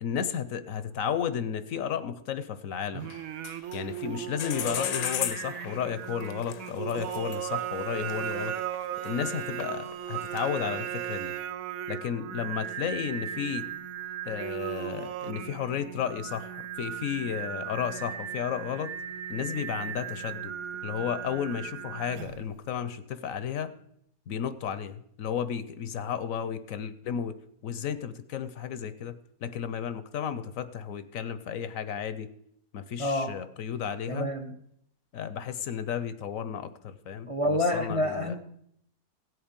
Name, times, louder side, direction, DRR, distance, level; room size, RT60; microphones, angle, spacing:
voice 1, 0.0-3.1 3.7-11.3 11.9-13.7 14.3-18.9 19.3-20.5 20.8-23.7 24.3-27.4 27.6-32.3 32.7-34.3 35.1-38.3, left 8 dB, 65° left, 12 dB, 1.0 m, -33 dB
Singing, 2.9-22.5, right 10 dB, 65° right, 1.0 m, -37 dB
sound 1, 3.0-4.1 4.4-9.1 9.4-10.6, left 10 dB, 85° left, 1.4 m, -36 dB
voice 2, 33.0-33.3 34.1-34.5 37.3-38.3, left 1 dB, 25° right, 7 dB, 0.7 m, -27 dB
16.5 x 8.0 x 5.2 m, 0.72 s
omnidirectional pair, 1.7 m